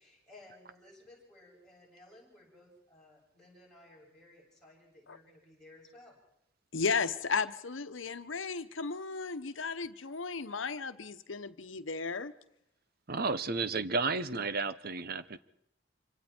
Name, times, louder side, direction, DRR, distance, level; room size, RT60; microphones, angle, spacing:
voice 1, 0.0-6.2, left 1 dB, 5° left, -4 dB, 7.1 m, -57 dB
voice 2, 6.7-12.3, left 5 dB, 85° left, 12 dB, 1.1 m, -34 dB
voice 3, 13.1-15.4, right 4 dB, 50° right, 14 dB, 0.9 m, -32 dB
26.0 x 25.5 x 4.5 m, 0.78 s
head